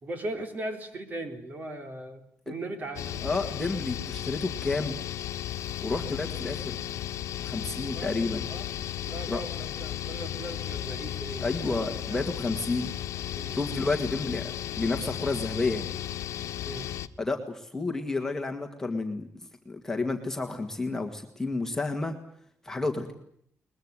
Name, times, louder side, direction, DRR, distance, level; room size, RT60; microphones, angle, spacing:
voice 1, 0.0-3.2 3.6-3.7 5.9-6.1 7.8-8.2 8.5-8.7 9.0-12.2 13.4-13.6 16.6-17.1, right 1 dB, 35° right, 7 dB, 3.7 m, -39 dB
sound 1, 3.0-17.1, left 11 dB, 85° left, 1.3 m, -35 dB
voice 2, 3.2-5.0 5.8-6.8 7.5-8.5 9.3-9.4 11.4-12.9 13.5-15.9 17.2-19.3 19.7-22.1 22.6-23.1, left 3 dB, 10° left, 3 dB, 2.0 m, -30 dB
22.0 x 21.5 x 9.8 m, 0.68 s
wide cardioid pair, 180°, 5 cm